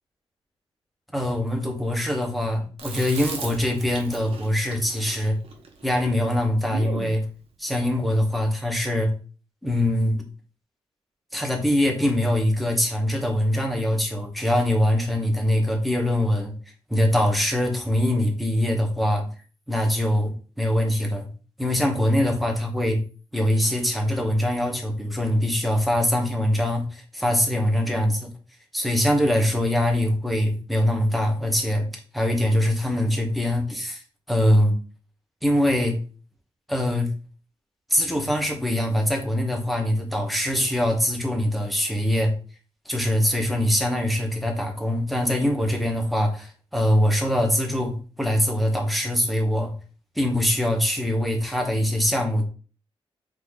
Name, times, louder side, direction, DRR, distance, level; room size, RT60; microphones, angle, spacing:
voice 1, 1.1-5.4 5.8-7.2 7.6-9.1 9.6-10.2 11.3-16.5 16.9-19.3 19.7-21.3 21.6-23.0 23.3-28.3 28.7-31.9 32.1-34.0 34.3-34.7 35.4-36.0 36.7-37.1 37.9-42.3 42.9-49.7 50.2-52.4, left 1 dB, ahead, 2 dB, 0.9 m, -23 dB
Chewing mastication, 2.8-7.2, right 4 dB, 75° right, 0.9 m, -38 dB
4.8 x 2.5 x 3.6 m, 0.38 s
wide cardioid pair, 140°, 10 cm